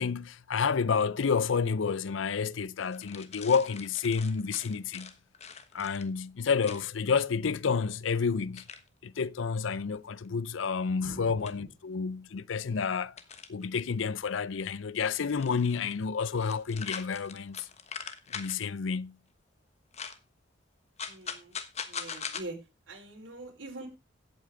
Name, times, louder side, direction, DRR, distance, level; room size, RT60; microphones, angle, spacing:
voice 1, 0.0-5.1 5.7-8.6 9.0-13.1 13.5-17.7 18.3-19.2, left 5 dB, 85° left, 0.5 m, -30 dB
sound 1, 2.9-6.1 6.6-6.8 8.6-8.9 10.2-10.3 11.5-11.6 13.2-13.7 15.2-16.0 16.3-18.7 19.9-20.2 21.0-22.4, left 6 dB, 35° left, 1.2 m, -42 dB
voice 2, 11.0-11.7 21.0-21.6 21.9-22.6 22.9-23.9, right 2 dB, 85° right, 4.6 m, -44 dB
15.5 x 8.5 x 3.8 m
head